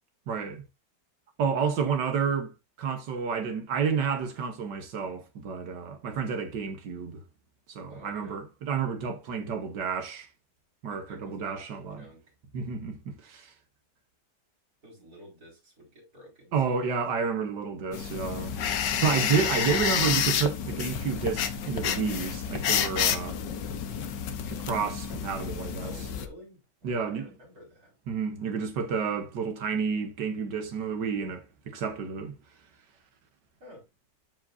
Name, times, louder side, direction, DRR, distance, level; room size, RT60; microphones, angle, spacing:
voice 1, 0.3-0.6 1.4-2.5 2.8-7.2 7.7-10.3 10.8-12.0 12.5-13.5 16.5-18.6 19.0-23.4 24.5-25.9 26.8-27.3 28.1-32.4, right 6 dB, 80° right, 1.7 m, -30 dB
voice 2, 7.9-8.4 10.9-11.4 11.7-12.3 14.8-16.8 25.8-27.9 33.6-33.8, equal, 55° right, 5.7 m, -51 dB
sound 1, 17.9-26.3, left 8 dB, 85° left, 1.6 m, -30 dB
13.5 x 5.0 x 2.6 m
omnidirectional pair, 1.8 m